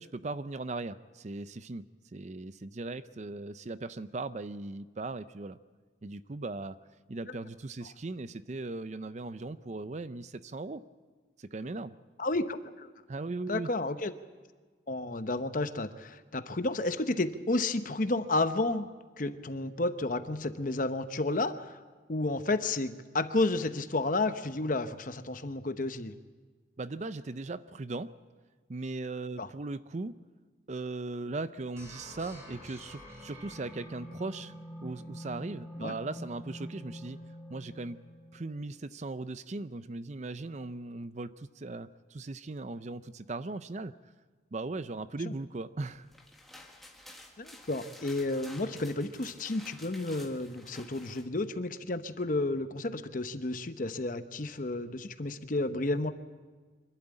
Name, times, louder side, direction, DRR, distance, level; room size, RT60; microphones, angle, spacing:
voice 1, 0.0-5.6 6.0-6.8 7.1-10.8 11.4-12.0 13.1-13.7 26.8-28.2 28.7-30.2 30.7-34.5 34.8-37.2 37.5-38.0 38.3-43.9 44.5-46.1, right 3 dB, 40° right, 14 dB, 0.5 m, -38 dB
voice 2, 12.2-12.9 13.5-14.1 14.9-18.9 19.2-21.8 22.1-26.1 29.4-29.5 35.8-35.9 45.3-45.4 47.4-56.1, left 2 dB, 45° left, 10 dB, 0.8 m, -31 dB
sound 1, 31.8-38.7, equal, 15° right, 5.5 m, -46 dB
sound 2, 45.9-51.3, left 1 dB, ahead, 1.6 m, -51 dB
25.0 x 12.0 x 8.9 m, 1.4 s
head